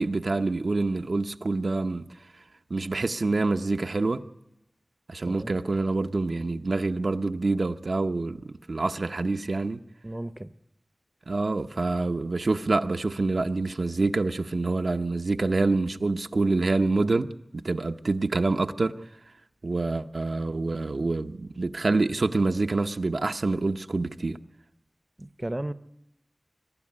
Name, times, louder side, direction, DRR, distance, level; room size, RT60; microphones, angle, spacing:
voice 1, 0.0-2.1 2.7-4.2 5.1-8.4 8.7-9.8 11.3-18.9 19.6-24.4, right 3 dB, 75° right, 0.7 m, -26 dB
voice 2, 10.0-10.5 25.2-25.7, right 1 dB, 25° right, 0.7 m, -34 dB
23.0 x 12.0 x 9.7 m
wide cardioid pair, 70°, 0 cm